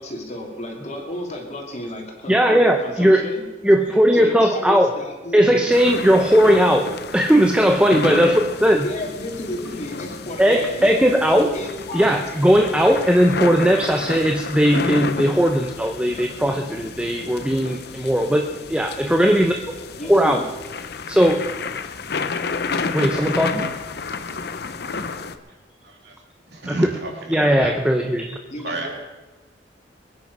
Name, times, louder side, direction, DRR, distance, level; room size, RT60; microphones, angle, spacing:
voice 1, 0.0-3.4 4.1-5.7 8.8-12.1 20.0-20.4 28.5-28.9, left 1 dB, 40° left, 1 dB, 2.8 m, -32 dB
voice 2, 2.3-3.3 3.6-4.9 5.3-6.9 7.1-8.8 10.4-11.5 11.9-19.5 20.0-20.4 21.1-21.5 22.9-23.6 27.3-28.4, equal, 5° right, 3 dB, 0.8 m, -18 dB
sound 1, 5.7-25.4, left 4 dB, 65° left, 0.8 m, -31 dB
voice 3, 25.8-26.2 26.5-27.7 28.6-28.9, right 2 dB, 70° right, 0 dB, 3.3 m, -30 dB
21.5 x 9.6 x 5.4 m, 1.2 s
head